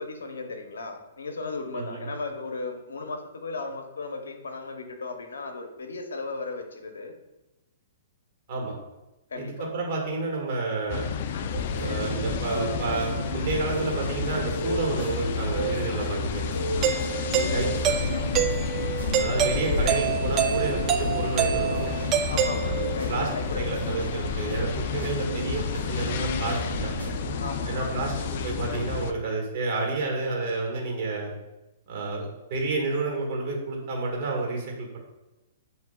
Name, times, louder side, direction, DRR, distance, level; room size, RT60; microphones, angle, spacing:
voice 1, 0.0-7.1 9.3-9.7 17.3-17.8 22.3-23.6 27.4-27.8, left 3 dB, 85° left, 5 dB, 0.6 m, -35 dB
voice 2, 9.3-11.0 11.8-16.5 17.5-17.9 19.2-21.9 23.1-23.3 23.6-26.9 27.7-31.3 31.9-35.0, right 3 dB, 50° right, -1 dB, 1.5 m, -30 dB
sound 1, 10.9-29.1, left 5 dB, 55° left, 0.3 m, -31 dB
sound 2, 11.5-27.5, right 1 dB, 85° right, 1.1 m, -35 dB
Doorbell, 16.8-23.2, right 8 dB, 30° right, 0.3 m, -27 dB
7.5 x 2.7 x 2.2 m, 0.99 s
hypercardioid pair, 135°, 0 cm